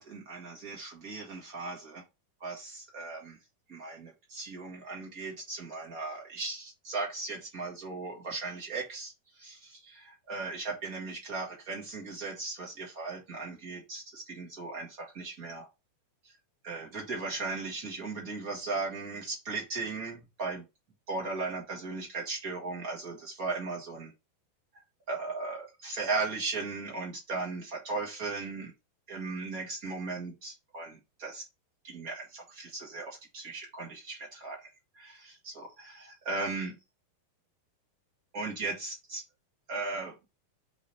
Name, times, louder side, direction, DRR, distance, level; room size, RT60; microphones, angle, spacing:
voice 1, 0.0-2.0 2.4-3.4 3.7-15.7 16.2-16.3 16.6-20.6 21.1-24.1 25.1-28.7 29.1-31.4 31.8-34.7 34.9-36.8 38.3-39.2 39.7-40.1, right 3 dB, 60° right, -2 dB, 0.8 m, -37 dB
5.2 x 5.0 x 4.1 m, 0.25 s
omnidirectional pair, 4.7 m